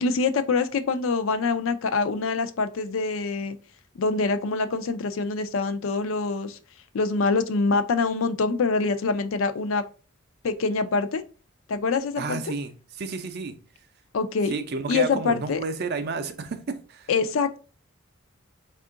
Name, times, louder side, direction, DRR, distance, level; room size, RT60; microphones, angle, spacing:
voice 1, 0.0-3.6 4.0-6.6 6.9-9.8 10.4-11.2 11.7-12.4 14.1-14.6 14.9-15.6 17.1-17.6, left 4 dB, 70° left, 0.4 m, -25 dB
voice 2, 12.2-12.7 13.0-13.6 14.5-17.1, right 4 dB, 50° right, 0.5 m, -31 dB
3.6 x 2.4 x 3.6 m
head